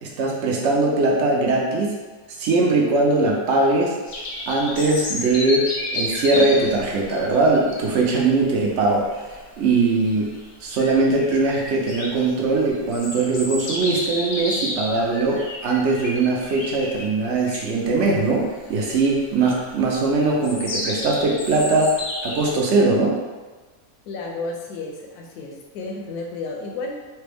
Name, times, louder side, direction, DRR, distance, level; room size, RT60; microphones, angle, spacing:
voice 1, 0.0-1.9 2.4-3.9 4.5-9.1 9.6-10.3 10.6-22.0 22.2-23.2, right 3 dB, 60° right, -1 dB, 0.8 m, -20 dB
sound 1, 4.1-22.6, left 1 dB, 55° left, 0.7 m, -32 dB
voice 2, 24.1-27.0, left 3 dB, 80° left, 0 dB, 1.1 m, -32 dB
3.3 x 2.2 x 3.3 m, 1.3 s
omnidirectional pair, 1.6 m